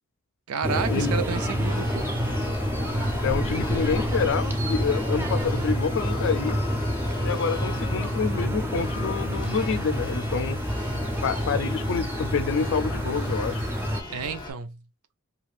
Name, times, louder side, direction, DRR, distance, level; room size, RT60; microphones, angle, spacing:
voice 1, 0.5-2.2 14.1-14.8, right 6 dB, 90° right, 0.5 m, -31 dB
sound 1, 0.6-14.0, equal, 10° right, 0.3 m, -28 dB
Church bell, 1.3-14.5, left 2 dB, 20° left, 0.7 m, -38 dB
voice 2, 3.2-6.6 7.2-10.6 11.2-13.6, left 5 dB, 60° left, 0.4 m, -27 dB
2.5 x 2.3 x 3.1 m
head